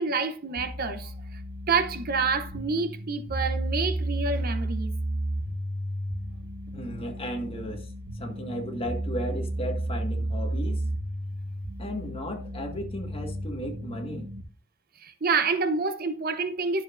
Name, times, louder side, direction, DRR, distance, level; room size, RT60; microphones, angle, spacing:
voice 1, 0.0-1.4 1.7-4.9 15.0-16.8, right 4 dB, 45° right, 0.7 m, -28 dB
sound 1, 0.6-14.4, right 1 dB, 85° right, 1.2 m, -33 dB
voice 2, 6.7-10.8 11.8-14.3, equal, 25° left, 1.6 m, -35 dB
11.0 x 7.0 x 2.5 m
head